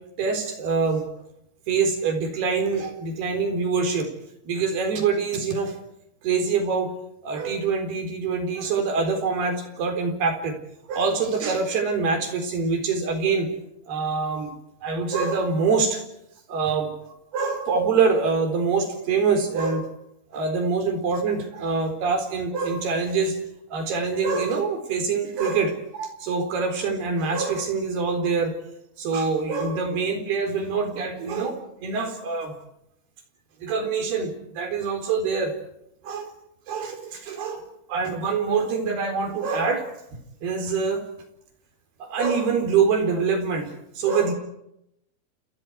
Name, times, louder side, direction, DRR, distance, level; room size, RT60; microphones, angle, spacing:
voice 1, 0.2-1.0 1.7-4.1 4.5-5.8 6.2-6.9 7.2-10.6 10.9-13.5 13.9-14.5 14.8-16.0 16.5-16.9 17.3-19.9 20.3-23.4 23.7-28.5 29.0-32.5 33.6-35.5 36.0-36.3 36.7-39.9 40.4-41.0 42.0-44.3, right 5 dB, 90° right, 6 dB, 6.0 m, -25 dB
29.0 x 29.0 x 4.8 m, 0.81 s
omnidirectional pair, 4.4 m